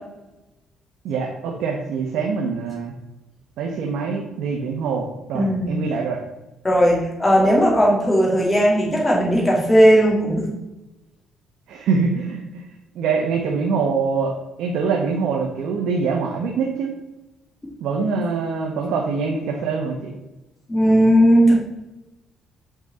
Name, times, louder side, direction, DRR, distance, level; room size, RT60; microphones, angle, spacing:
voice 1, 1.0-2.9 3.6-6.2 11.7-12.6 12.9-16.9 17.8-20.1, right 5 dB, 75° right, 1 dB, 1.0 m, -24 dB
voice 2, 5.3-5.8 6.6-10.5 20.7-21.5, equal, 15° left, -3 dB, 2.3 m, -16 dB
6.0 x 5.0 x 4.1 m, 1.0 s
cardioid pair, 110°, 0 cm